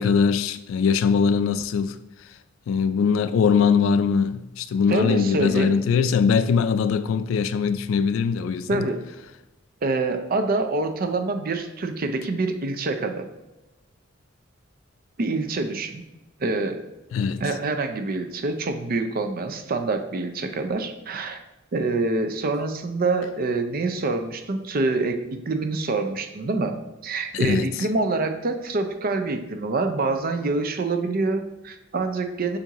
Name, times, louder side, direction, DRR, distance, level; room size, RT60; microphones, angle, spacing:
voice 1, 0.0-2.0 2.7-8.9 17.1-17.4 27.3-27.7, left 6 dB, 75° left, 0.3 m, -21 dB
voice 2, 4.9-5.7 8.7-9.0 9.8-13.3 15.2-16.0 16.4-16.8 17.4-21.4 21.7-26.8 27.0-32.6, right 3 dB, 45° right, 0.5 m, -26 dB
7.0 x 2.6 x 2.9 m
head